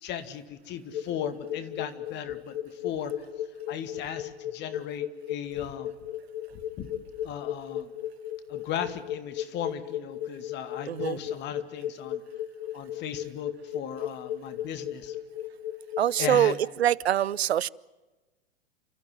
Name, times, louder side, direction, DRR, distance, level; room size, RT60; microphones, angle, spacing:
voice 1, 0.0-3.3 3.7-5.9 6.8-6.9 7.2-7.9 8.5-12.2 12.7-15.2 16.2-16.6, left 9 dB, 35° left, 2.1 m, -37 dB
sound 1, 0.9-16.5, left 11 dB, 55° left, 2.0 m, -35 dB
voice 2, 10.9-11.2 16.0-17.7, right 11 dB, 80° right, 0.7 m, -24 dB
30.0 x 14.5 x 9.2 m
hypercardioid pair, 110°, 31 cm